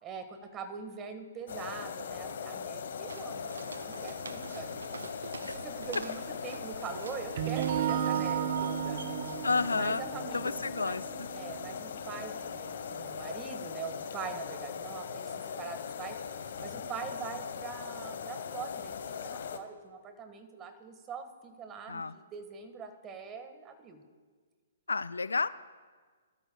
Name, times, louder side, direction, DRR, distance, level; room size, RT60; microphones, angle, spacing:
voice 1, 0.0-5.0 5.4-9.0 9.7-11.0 11.3-16.2 16.6-24.0, right 6 dB, 20° right, 8 dB, 1.6 m, -43 dB
sound 1, 1.5-19.6, left 7 dB, 60° left, 1.1 m, -40 dB
Walk footsteps, 3.1-9.8, right 5 dB, 75° right, 0.5 m, -47 dB
sound 2, 7.2-13.1, right 10 dB, 45° right, 0.8 m, -34 dB
voice 2, 9.4-10.1 10.3-11.3 21.9-22.1 24.9-25.5, left 4 dB, 80° left, 15 dB, 0.4 m, -31 dB
22.0 x 13.0 x 2.3 m, 1.5 s
figure-of-eight pair, 125°, 0 cm